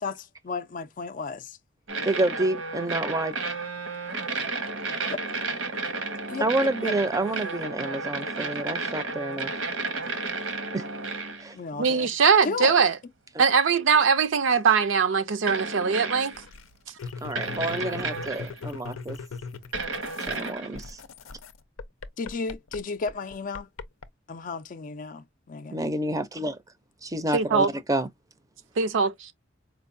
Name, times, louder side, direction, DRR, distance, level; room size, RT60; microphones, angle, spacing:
voice 1, 0.0-1.6 5.1-5.2 6.3-6.9 11.5-12.1 12.4-12.8 22.2-23.7 24.3-25.8, left 4 dB, 40° left, 0.4 m, -34 dB
sound 1, 1.9-11.6 13.9-14.0 15.5-16.5 17.3-18.6 19.7-20.8, right 3 dB, 85° right, 1.0 m, -32 dB
voice 2, 2.0-3.3 6.4-9.5 10.7-10.9 11.4-11.6 17.2-19.2 20.2-21.0 25.7-26.6 27.0-28.1, right 1 dB, 15° right, 0.5 m, -28 dB
voice 3, 11.8-12.9 13.4-16.3 27.3-27.7 28.8-29.3, right 5 dB, 70° right, 0.5 m, -21 dB
sound 2, 16.3-20.5 20.8-24.1, left 5 dB, 90° left, 0.6 m, -39 dB
4.5 x 2.2 x 2.5 m
head